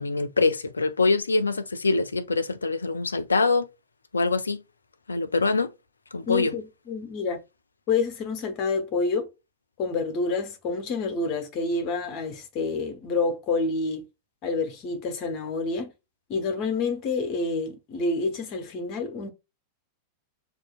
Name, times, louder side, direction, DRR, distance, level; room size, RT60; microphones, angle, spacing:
voice 1, 0.0-3.7 4.1-4.6 5.1-5.7 6.1-6.5, left 3 dB, 75° left, 0.4 m, -24 dB
voice 2, 6.3-7.4 7.9-9.3 9.8-14.0 14.4-15.9 16.3-19.3, left 4 dB, 40° left, 1.0 m, -28 dB
6.2 x 2.6 x 2.4 m
figure-of-eight pair, 90°, 0 cm